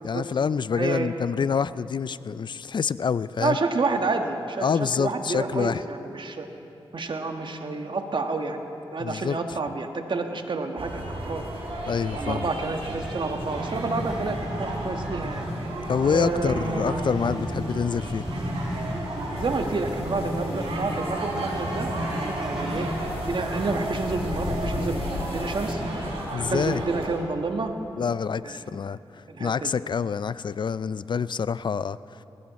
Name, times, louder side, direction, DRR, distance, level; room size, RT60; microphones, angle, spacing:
voice 1, 0.0-3.6 4.6-5.8 9.0-9.6 11.8-12.5 15.9-18.2 26.3-26.8 28.0-29.0 29.4-32.2, left 6 dB, 55° left, 17 dB, 0.4 m, -27 dB
voice 2, 0.7-1.1 3.4-6.5 6.9-8.6 8.9-11.4 12.1-15.5 16.1-17.1 19.4-21.9 22.3-22.9 23.3-25.8 26.4-27.7 28.4-28.6 29.3-29.7, right 3 dB, 55° right, 5 dB, 1.4 m, -29 dB
sound 1, 10.8-27.1, right 1 dB, 80° right, 3.9 m, -34 dB
sound 2, 12.5-26.2, equal, 5° right, 3.0 m, -35 dB
sound 3, 19.4-25.7, left 4 dB, 75° left, 1.2 m, -39 dB
20.0 x 17.5 x 4.1 m, 2.9 s
cardioid pair, 60°, 10 cm